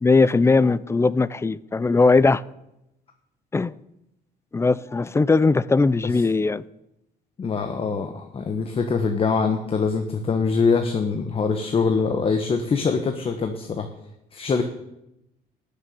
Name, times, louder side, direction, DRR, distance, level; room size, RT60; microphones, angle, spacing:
voice 1, 0.0-2.4 3.5-3.7 4.5-6.7, left 3 dB, 15° left, 0.4 m, -19 dB
voice 2, 7.4-13.9 14.3-14.6, left 5 dB, 35° left, 1.2 m, -23 dB
12.5 x 6.8 x 9.5 m
cardioid pair, 110°, 17 cm